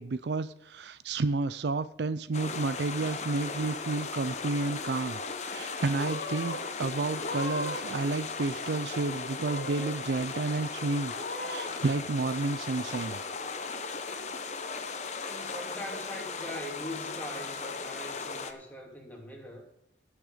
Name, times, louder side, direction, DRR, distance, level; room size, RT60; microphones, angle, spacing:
voice 1, 0.0-11.1 11.5-13.2, right 3 dB, 65° right, 14 dB, 0.5 m, -31 dB
sound 1, 2.3-18.5, left 4 dB, 40° left, 0.9 m, -37 dB
Purr / Meow, 3.2-4.0 4.3-4.9 5.6-5.7 6.0-6.6 7.1-8.0 8.2-9.0 9.4-10.0 10.4-10.5 11.0-11.7, left 1 dB, 55° left, 2.4 m, -39 dB
voice 2, 15.3-19.6, left 1 dB, 10° left, 0 dB, 2.4 m, -42 dB
17.0 x 6.5 x 5.1 m, 0.84 s
head